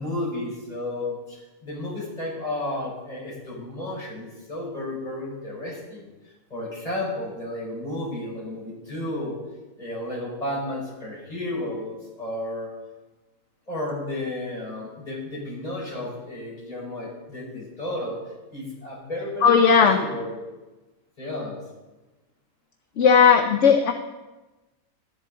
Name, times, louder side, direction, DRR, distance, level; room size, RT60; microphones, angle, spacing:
voice 1, 0.0-6.1 6.5-9.4 9.8-12.7 13.7-18.2 18.5-20.4 21.2-21.6, left 1 dB, 25° left, -7 dB, 5.4 m, -32 dB
voice 2, 19.4-20.0 23.0-23.9, left 6 dB, 60° left, 6 dB, 0.9 m, -16 dB
13.5 x 11.0 x 3.8 m, 1.1 s
omnidirectional pair, 1.5 m